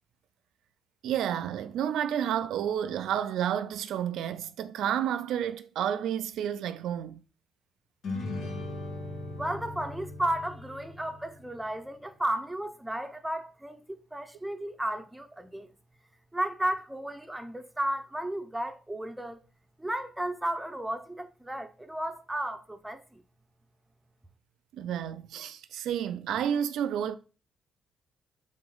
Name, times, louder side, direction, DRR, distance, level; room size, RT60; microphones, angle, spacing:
voice 1, 1.0-7.2 24.7-27.1, right 9 dB, 75° right, 0.3 m, -30 dB
sound 1, 8.0-11.6, left 2 dB, 70° left, 1.1 m, -38 dB
voice 2, 9.4-15.7 16.3-19.4 19.8-23.2, right 1 dB, 10° right, 0.7 m, -33 dB
3.8 x 3.1 x 3.8 m
supercardioid pair, 55°, 0 cm